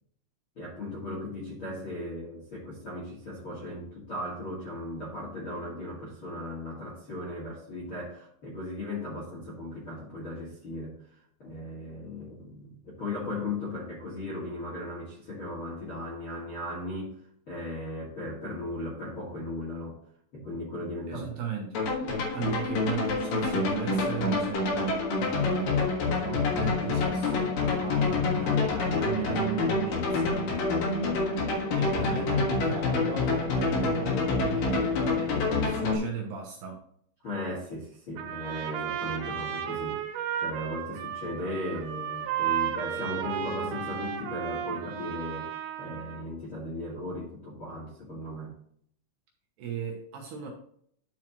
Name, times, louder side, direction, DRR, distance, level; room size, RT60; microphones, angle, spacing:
voice 1, 0.6-10.9 11.4-17.1 17.5-20.0 20.3-21.3 22.4-22.5 37.2-40.0 40.4-45.5 45.8-48.5, left 1 dB, 40° left, -6 dB, 1.9 m, -37 dB
voice 2, 21.1-21.8 22.3-30.6 31.7-36.8 49.6-50.5, right 7 dB, 70° right, 0 dB, 2.7 m, -36 dB
sound 1, 21.7-36.0, left 3 dB, 60° left, 2.4 m, -27 dB
Trumpet, 38.2-46.2, right 9 dB, 85° right, 3.8 m, -33 dB
11.0 x 5.6 x 3.0 m, 0.64 s
omnidirectional pair, 5.7 m